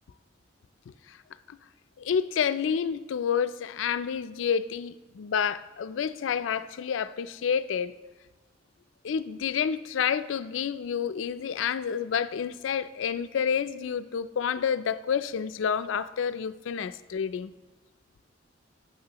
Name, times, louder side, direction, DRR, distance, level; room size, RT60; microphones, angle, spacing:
voice 1, 2.0-7.9 9.0-17.5, left 7 dB, 85° left, 14 dB, 0.4 m, -29 dB
16.0 x 6.2 x 2.9 m, 1.2 s
head